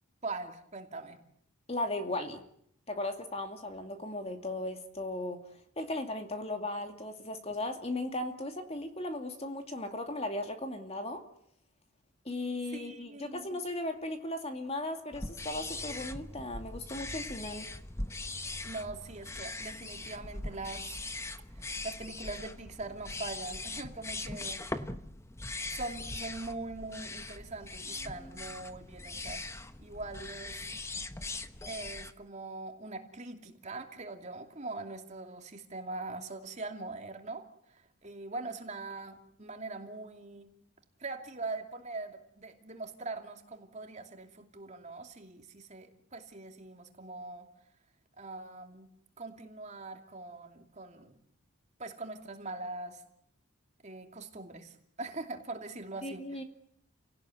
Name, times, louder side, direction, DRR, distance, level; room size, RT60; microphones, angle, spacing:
voice 1, 0.2-1.2 12.7-13.4 18.6-20.9 21.6-24.9 25.7-30.6 31.7-40.5 41.0-47.5 48.2-48.9 49.2-51.1 51.8-53.0 53.8-56.4, right 3 dB, 30° right, 5 dB, 2.8 m, -42 dB
voice 2, 1.7-2.4 2.9-11.2 12.2-17.7 56.0-56.4, left 1 dB, 30° left, 6 dB, 2.4 m, -37 dB
sound 1, 15.1-32.1, left 2 dB, 10° left, 1.0 m, -41 dB
30.0 x 18.0 x 9.4 m, 0.70 s
head